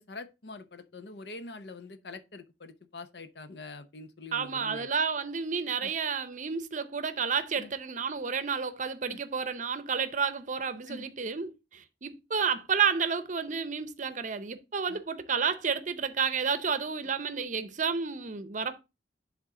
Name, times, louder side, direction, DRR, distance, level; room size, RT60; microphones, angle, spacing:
voice 1, 0.0-4.9 5.8-5.9 7.6-7.7 9.1-9.2 10.9-11.1 14.9-15.0, left 2 dB, 70° left, 0.8 m, -45 dB
voice 2, 4.3-18.8, right 6 dB, 45° right, 0.7 m, -31 dB
10.0 x 3.7 x 3.7 m
head